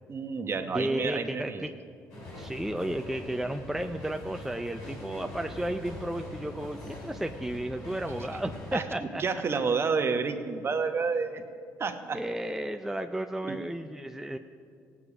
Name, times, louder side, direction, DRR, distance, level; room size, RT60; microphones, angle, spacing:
voice 1, 0.1-1.6 5.1-5.2 8.3-8.4 8.7-11.4 11.8-12.2 13.5-13.7, right 5 dB, 35° right, 7 dB, 1.1 m, -30 dB
voice 2, 0.7-1.7 2.4-9.2 12.1-14.4, right 1 dB, 5° right, 6 dB, 0.5 m, -33 dB
sound 1, 2.1-8.8, left 1 dB, 85° left, 3.4 m, -43 dB
16.5 x 8.5 x 5.0 m, 2.3 s
supercardioid pair, 75°, 7 cm